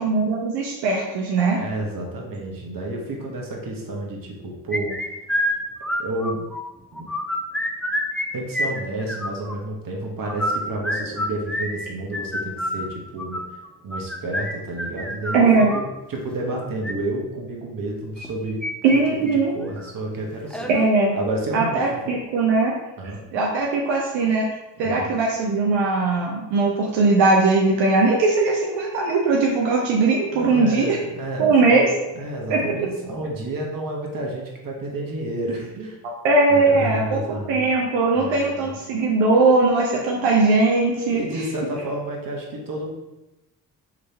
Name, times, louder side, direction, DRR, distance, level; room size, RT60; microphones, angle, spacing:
voice 1, 0.0-1.6 15.3-15.7 18.8-19.5 20.7-21.1 21.5-22.7 23.3-24.5 24.8-31.0 31.4-31.9 32.5-32.8 36.0-37.2 37.5-41.2, right 3 dB, 80° right, -2 dB, 0.8 m, -19 dB
voice 2, 1.5-5.0 6.0-6.5 6.9-7.1 8.3-13.4 13.8-18.6 18.9-19.0 19.3-20.7 21.1-22.2 23.0-23.2 24.8-25.1 30.3-36.0 36.5-37.7 38.1-38.7 40.1-40.3 41.1-42.9, right 1 dB, 50° right, -1 dB, 1.4 m, -30 dB
sound 1, 4.7-6.6 6.9-8.3 8.5-9.5 10.2-15.9 16.6-16.9 18.2-19.0 19.3-19.4 19.8-19.9 20.5-20.9, left 1 dB, ahead, 0.5 m, -27 dB
3.8 x 3.3 x 4.3 m, 0.99 s
supercardioid pair, 50°, 44 cm